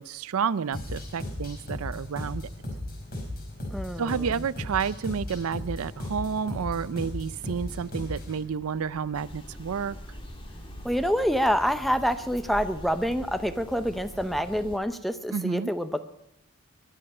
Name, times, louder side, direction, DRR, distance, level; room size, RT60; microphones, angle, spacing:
voice 1, 0.0-2.5 4.0-10.0 15.3-15.7, right 6 dB, 90° right, 18 dB, 0.5 m, -30 dB
sound 1, 0.7-8.4, left 1 dB, 45° left, 5.5 m, -36 dB
voice 2, 3.7-4.3 10.8-16.0, equal, ahead, 10 dB, 0.6 m, -27 dB
sound 2, 5.8-13.9, left 1 dB, 75° left, 6.5 m, -51 dB
sound 3, 9.1-14.8, equal, 25° left, 1.7 m, -43 dB
21.5 x 11.0 x 5.5 m, 0.85 s
head